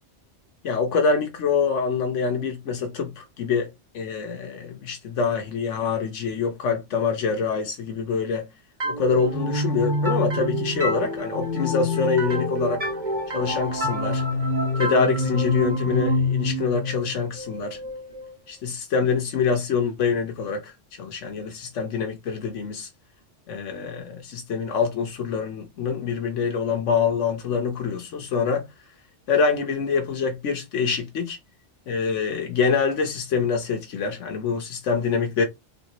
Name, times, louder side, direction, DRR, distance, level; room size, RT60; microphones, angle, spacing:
voice 1, 0.6-3.7 3.9-8.5 8.9-12.9 13.3-14.2 14.8-17.8 18.5-22.9 23.5-28.7 29.3-31.4 31.9-35.4, left 5 dB, 90° left, 1.2 m, -25 dB
sound 1, 8.8-18.3, left 1 dB, 40° right, 1.4 m, -27 dB
4.1 x 3.4 x 2.9 m
omnidirectional pair, 1.2 m